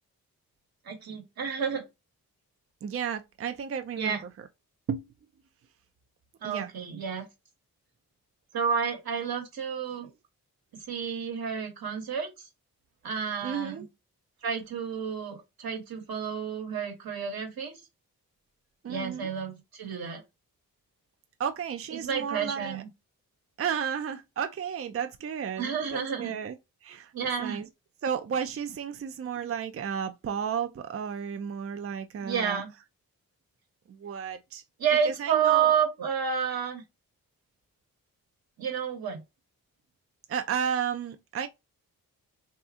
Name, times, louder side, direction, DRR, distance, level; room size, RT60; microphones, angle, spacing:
voice 1, 0.8-1.8 4.0-4.2 6.4-7.3 8.5-10.1 10.9-12.3 13.0-13.9 14.4-17.8 18.9-20.2 21.9-22.9 25.6-26.3 27.1-27.6 32.2-32.7 34.8-36.8 38.6-39.2, right 7 dB, 75° right, 1.4 m, -30 dB
voice 2, 2.8-4.2 4.9-5.1 6.4-6.7 13.4-13.9 18.8-19.3 21.4-22.8 23.6-26.6 26.8-27.1 27.4-27.7 28.0-32.6 33.9-34.6 35.1-35.7 40.3-41.5, right 7 dB, 40° right, 0.5 m, -33 dB
2.8 x 2.4 x 3.6 m
cardioid pair, 45°, 37 cm